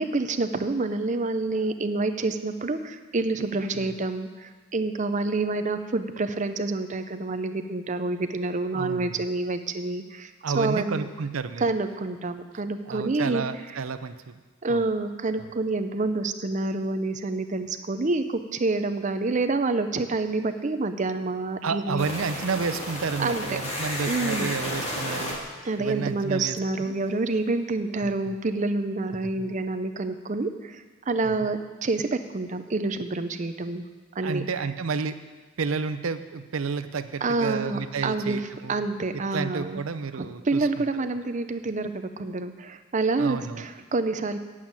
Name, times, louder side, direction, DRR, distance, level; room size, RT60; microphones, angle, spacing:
voice 1, 0.0-11.1 11.6-13.5 14.6-22.1 23.2-23.6 24.1-24.5 25.6-33.9 34.1-34.5 37.2-38.4 38.7-39.8 40.2-44.4, right 3 dB, 40° right, 9 dB, 0.6 m, -28 dB
voice 2, 8.7-9.2 10.4-11.7 12.9-14.4 14.7-14.8 21.6-25.4 25.8-26.9 28.0-28.4 29.4-29.5 31.2-31.3 34.2-35.2 35.6-38.8 39.1-40.7 43.2-43.6, right 5 dB, 85° right, 11 dB, 0.6 m, -31 dB
sound 1, 22.0-26.8, left 1 dB, 30° left, 1.8 m, -33 dB
8.4 x 7.3 x 8.7 m, 1.3 s
head